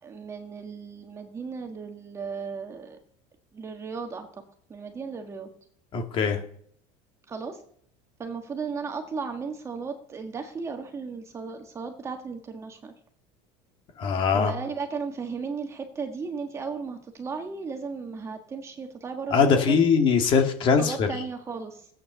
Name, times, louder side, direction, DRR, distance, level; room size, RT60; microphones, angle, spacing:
voice 1, 0.0-3.0 3.5-4.4 4.7-5.5 7.3-7.6 8.2-12.9 14.3-19.8 20.8-21.9, right 5 dB, 20° right, 5 dB, 1.5 m, -35 dB
voice 2, 5.9-6.4 14.0-14.5 19.3-21.1, left 6 dB, 35° left, 5 dB, 2.0 m, -21 dB
16.5 x 8.6 x 6.7 m, 0.64 s
cardioid pair, 165°, 15 cm